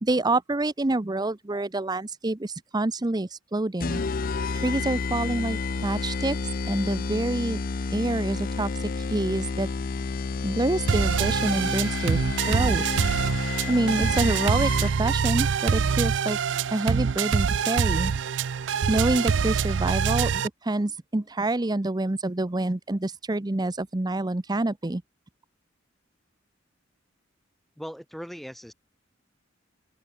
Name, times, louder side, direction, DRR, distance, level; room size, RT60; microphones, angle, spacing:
voice 1, 0.0-4.0 4.5-7.6 7.9-9.7 10.0-12.8 13.7-16.4 16.7-18.1 18.9-25.0, right 2 dB, 20° right, 0.7 m, -27 dB
sound 1, 3.8-15.2, left 4 dB, 50° left, 0.5 m, -30 dB
sound 2, 10.9-20.5, right 6 dB, 65° right, 0.4 m, -25 dB
voice 2, 27.8-28.7, equal, ahead, 3.5 m, -39 dB
open air
head